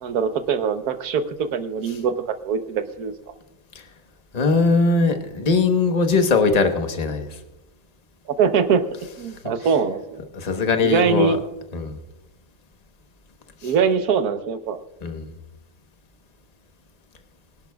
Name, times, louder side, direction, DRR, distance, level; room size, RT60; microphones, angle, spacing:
voice 1, 0.0-3.1 8.4-8.8 9.2-10.0 10.8-11.4 13.6-14.8, right 6 dB, 85° right, 9 dB, 1.4 m, -22 dB
voice 2, 4.3-7.4 10.3-11.4 11.7-12.0 13.6-13.7 15.0-15.3, left 4 dB, 30° left, 6 dB, 1.1 m, -20 dB
24.0 x 11.5 x 2.3 m, 0.97 s
omnidirectional pair, 1.6 m